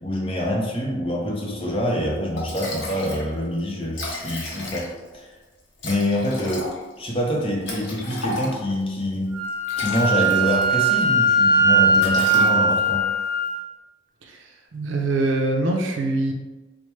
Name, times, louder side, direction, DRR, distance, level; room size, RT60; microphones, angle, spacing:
voice 1, 0.0-5.3 5.8-9.4 9.8-13.1, left 1 dB, 25° left, -1 dB, 0.5 m, -26 dB
Liquid, 2.0-2.1 2.4-3.3 3.6-3.7 3.8-5.1 5.8-8.8 9.5-11.0 11.3-11.6 11.9-13.0, left 2 dB, 60° left, 0.7 m, -34 dB
Wind instrument woodwind instrument, 9.3-13.5, right 2 dB, 20° right, 0.8 m, -19 dB
voice 2, 14.2-16.3, right 2 dB, 70° right, 2 dB, 0.5 m, -24 dB
4.5 x 2.1 x 3.1 m, 1.2 s
head